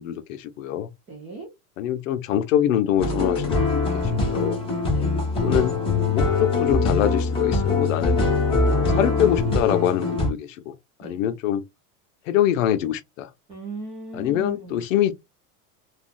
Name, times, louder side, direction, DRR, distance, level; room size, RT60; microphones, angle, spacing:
voice 1, 0.0-0.9 1.8-4.6 5.4-5.7 6.1-8.2 8.7-10.7 11.0-11.6 12.3-13.3 14.1-15.1, left 11 dB, 60° left, 0.6 m, -24 dB
voice 2, 1.1-1.5 4.9-5.1 8.8-9.3 11.0-11.2 13.5-14.9, right 2 dB, 15° right, 0.4 m, -37 dB
sound 1, 3.0-10.3, left 3 dB, 10° left, 1.0 m, -22 dB
3.6 x 2.3 x 2.4 m
supercardioid pair, 160°, 44 cm